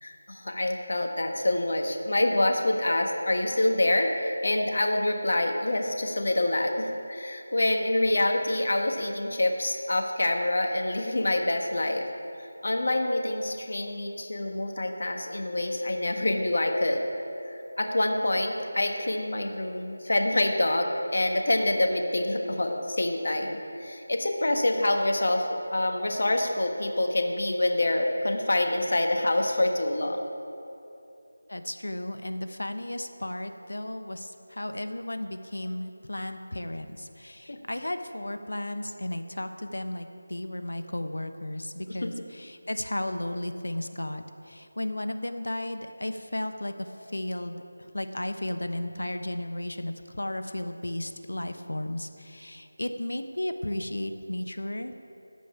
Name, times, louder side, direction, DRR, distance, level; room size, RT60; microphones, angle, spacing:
voice 1, 0.0-12.1 12.6-17.0 17.4-30.2 37.5-37.6 42.0-42.1, left 1 dB, 60° left, 3 dB, 1.4 m, -26 dB
voice 2, 31.5-46.9 47.1-47.6 47.9-55.0, left 1 dB, 85° left, 8 dB, 1.0 m, -34 dB
14.0 x 5.3 x 8.9 m, 2.8 s
figure-of-eight pair, 170°, 0 cm